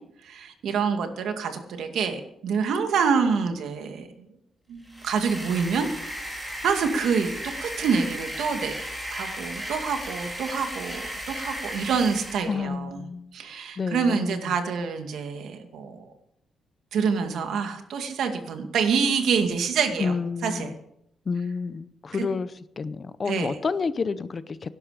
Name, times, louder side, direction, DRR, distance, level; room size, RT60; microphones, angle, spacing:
voice 1, 0.2-4.3 4.7-5.9 6.6-8.8 9.1-13.1 13.3-16.1 16.9-20.1 20.4-20.7 22.1-22.3 23.3-23.6, right 6 dB, 80° right, 2.2 m, -26 dB
Mansfeild Film Camera, 4.8-12.6, equal, 5° right, 3.6 m, -35 dB
voice 2, 12.5-13.3 13.8-14.4 20.0-20.8 21.3-22.5 22.8-24.7, left 5 dB, 30° left, 0.6 m, -29 dB
17.0 x 12.0 x 5.1 m
wide cardioid pair, 175°, 0 cm